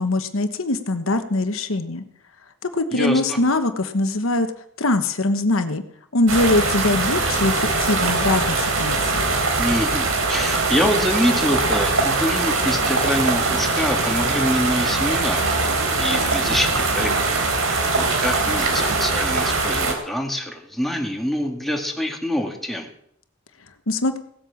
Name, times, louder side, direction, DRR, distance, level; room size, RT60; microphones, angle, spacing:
voice 1, 0.0-2.0 2.7-4.5 4.8-5.8 6.1-9.2 23.9-24.2, left 2 dB, 75° left, 8 dB, 1.2 m, -22 dB
voice 2, 2.9-3.4 9.6-15.5 16.0-17.1 17.7-22.9, equal, ahead, 1 dB, 2.2 m, -25 dB
sound 1, 6.3-19.9, right 3 dB, 80° right, 3.6 m, -22 dB
17.5 x 8.7 x 7.1 m, 0.71 s
head